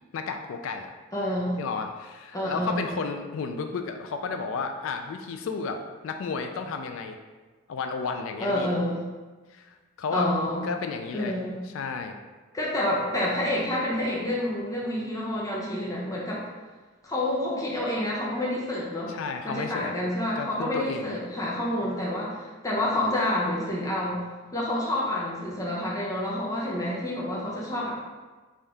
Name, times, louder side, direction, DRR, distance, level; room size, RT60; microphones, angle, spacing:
voice 1, 0.1-0.9 1.6-7.2 7.7-8.7 9.5-10.3 10.5-11.4 11.7-12.1 19.1-19.9 20.4-21.2, left 5 dB, 70° left, 5 dB, 0.3 m, -32 dB
voice 2, 1.1-1.6 2.3-2.9 8.4-9.0 10.1-10.6 11.1-11.6 12.5-16.4 17.0-19.1 19.4-24.2 24.5-27.9, left 1 dB, 15° left, -5 dB, 0.6 m, -28 dB
3.5 x 2.7 x 3.4 m, 1.3 s
head